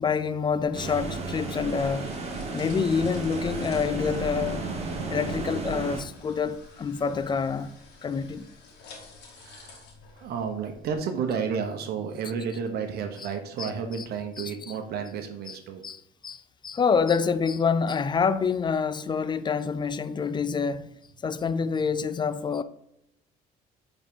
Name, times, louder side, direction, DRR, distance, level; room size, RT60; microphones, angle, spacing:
voice 1, 0.0-2.1 2.5-4.6 5.1-7.7 8.0-8.4 13.6-13.7 14.4-14.5 15.5-15.6 15.8-20.9 21.2-22.6, left 5 dB, 25° left, 0.4 m, -27 dB
sound 1, 0.7-6.0, right 3 dB, 40° right, 1.2 m, -33 dB
sound 2, 1.0-11.0, left 3 dB, 80° left, 1.8 m, -50 dB
voice 2, 9.4-9.9 10.1-15.8, right 6 dB, 70° right, 1.0 m, -32 dB
8.7 x 4.0 x 3.7 m
cardioid pair, 110°, 17 cm